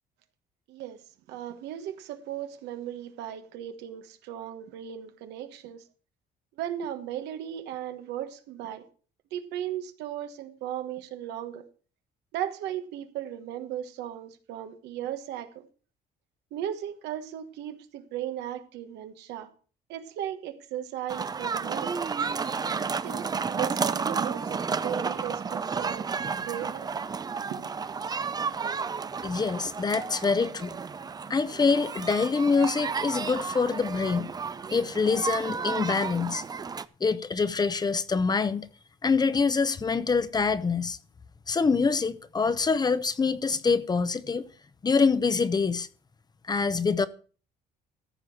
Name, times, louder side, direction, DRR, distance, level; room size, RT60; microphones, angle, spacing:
voice 1, 0.7-1.0 1.3-5.9 6.6-8.9 9.3-11.7 12.3-15.7 16.5-19.5 19.9-22.0 22.6-26.1 26.5-26.9 27.5-27.8, right 11 dB, 85° right, 1.3 m, -36 dB
sound 1, 21.1-36.9, right 5 dB, 25° right, 0.5 m, -32 dB
voice 2, 29.2-30.7 31.3-34.3 34.7-36.4 37.0-38.7 39.0-41.0 41.5-44.4 44.8-45.9 46.5-47.1, left 4 dB, 25° left, 0.7 m, -25 dB
14.0 x 4.9 x 7.0 m
cardioid pair, 110°, 17 cm